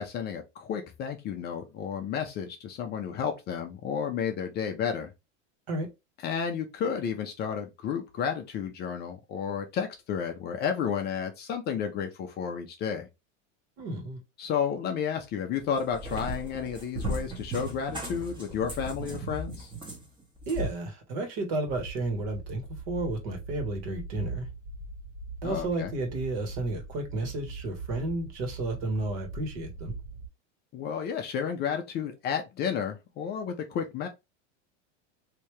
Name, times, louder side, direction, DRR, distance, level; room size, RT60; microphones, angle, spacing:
voice 1, 0.0-5.1 6.2-13.1 14.4-19.7 25.4-25.9 30.7-34.1, left 7 dB, 25° left, 0.5 m, -32 dB
voice 2, 13.8-14.2 20.5-24.5 25.4-29.9, right 2 dB, 55° right, 1.5 m, -32 dB
Cat, 15.6-20.7, right 1 dB, 15° right, 1.0 m, -36 dB
sound 1, 21.7-30.3, right 3 dB, 80° right, 1.6 m, -41 dB
3.4 x 2.8 x 3.1 m
supercardioid pair, 145°, 37 cm